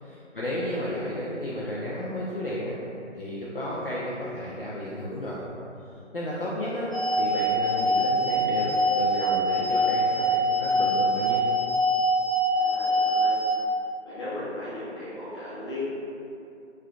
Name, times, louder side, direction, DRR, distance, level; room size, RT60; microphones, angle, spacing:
voice 1, 0.0-2.8 3.1-5.4 6.1-6.9 7.2-8.7 9.0-11.4, left 1 dB, 45° left, -7 dB, 0.5 m, -33 dB
voice 2, 0.6-1.0 12.5-13.4 14.0-15.8, left 1 dB, 20° left, -12 dB, 0.9 m, -37 dB
sound 1, 6.9-13.5, equal, 5° right, 0.8 m, -24 dB
5.0 x 3.1 x 2.4 m, 2.7 s
figure-of-eight pair, 160°, 38 cm